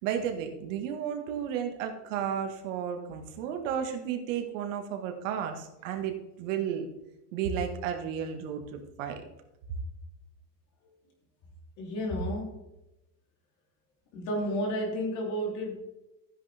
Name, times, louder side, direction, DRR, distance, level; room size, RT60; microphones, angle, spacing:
voice 1, 0.0-6.1 6.4-6.9 7.3-9.3, right 8 dB, 50° right, 5 dB, 1.9 m, -33 dB
voice 2, 11.8-12.6 14.1-15.8, equal, 35° left, 0 dB, 3.4 m, -31 dB
14.0 x 9.9 x 3.5 m, 0.93 s
supercardioid pair, 165°, 48 cm